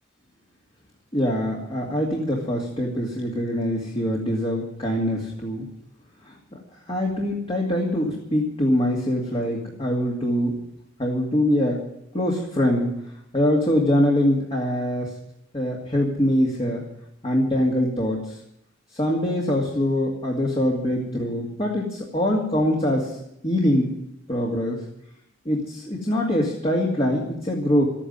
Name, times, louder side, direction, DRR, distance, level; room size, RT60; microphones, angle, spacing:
voice 1, 1.1-5.7 6.5-6.6 6.9-10.5 11.0-11.8 12.1-12.9 13.3-15.1 15.5-16.8 17.2-18.2 18.9-23.1 23.4-23.9 24.3-24.8 25.5-27.8, left 1 dB, 30° left, -1 dB, 2.3 m, -23 dB
13.0 x 9.9 x 9.5 m, 0.79 s
head